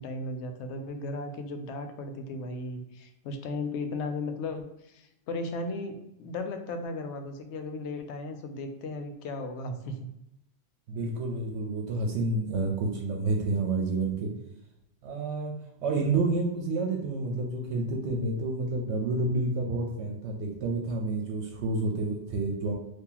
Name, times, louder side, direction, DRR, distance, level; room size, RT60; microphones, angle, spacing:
voice 1, 0.0-10.1, left 2 dB, 75° left, 6 dB, 0.8 m, -36 dB
voice 2, 10.9-14.3 15.0-15.5 15.8-22.7, right 3 dB, 70° right, 1 dB, 0.9 m, -29 dB
2.8 x 2.7 x 3.8 m, 0.86 s
omnidirectional pair, 1.2 m